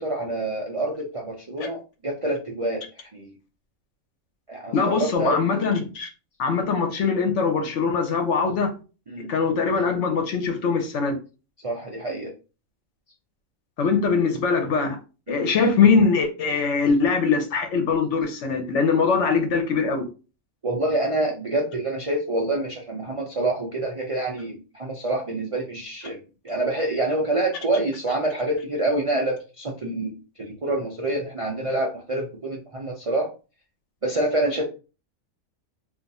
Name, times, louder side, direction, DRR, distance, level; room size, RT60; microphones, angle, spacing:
voice 1, 0.0-3.3 4.5-5.5 9.1-9.3 11.6-12.3 15.3-15.4 20.6-26.2 26.4-33.3 34.0-34.7, right 2 dB, 60° right, 0.3 m, -27 dB
voice 2, 4.7-6.1 6.4-8.8 9.3-11.2 13.8-15.0 15.3-20.1, left 5 dB, 60° left, 0.9 m, -22 dB
2.5 x 2.4 x 4.0 m
omnidirectional pair, 1.5 m